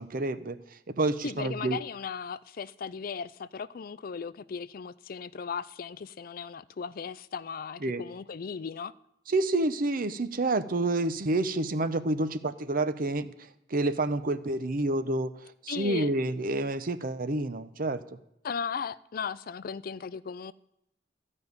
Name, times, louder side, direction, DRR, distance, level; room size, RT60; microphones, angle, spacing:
voice 1, 0.0-1.8 7.8-8.0 9.3-18.0, right 2 dB, 50° right, 0.8 m, -29 dB
voice 2, 1.2-8.9 15.7-16.1 18.4-20.5, left 6 dB, 55° left, 0.4 m, -37 dB
14.0 x 5.5 x 9.5 m
head